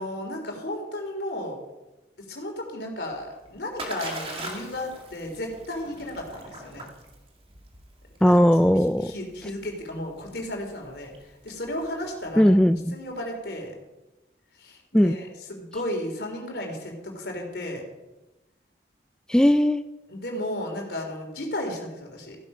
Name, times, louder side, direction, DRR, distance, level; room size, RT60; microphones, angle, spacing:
voice 1, 0.0-1.6 2.2-6.9 8.2-8.4 8.7-11.1 11.4-12.5 12.9-13.7 14.6-17.8 20.1-22.4, left 1 dB, 70° left, 2 dB, 3.4 m, -34 dB
Splash splatter, 3.1-12.9, right 2 dB, 30° right, 2.0 m, -42 dB
voice 2, 8.2-9.1 12.4-13.0 14.9-15.2 19.3-19.8, equal, 5° left, 9 dB, 0.3 m, -18 dB
15.0 x 9.5 x 5.5 m, 1.0 s
head